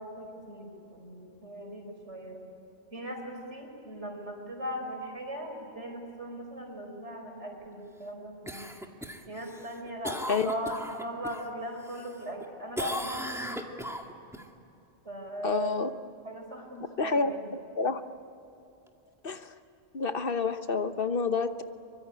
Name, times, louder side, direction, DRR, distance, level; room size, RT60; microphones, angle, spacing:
voice 1, 0.0-2.4 2.9-8.7 9.3-13.5 15.0-15.8 16.2-17.5, equal, 80° right, 2 dB, 5.6 m, -39 dB
Cough, 8.5-11.5 11.9-12.5 12.8-14.4 18.9-19.0, equal, ahead, 1.9 m, -37 dB
voice 2, 15.4-15.9 17.0-18.0 19.2-19.5 19.9-21.6, left 4 dB, 55° left, 9 dB, 1.2 m, -29 dB
24.0 x 24.0 x 9.9 m, 2.8 s
omnidirectional pair, 1.2 m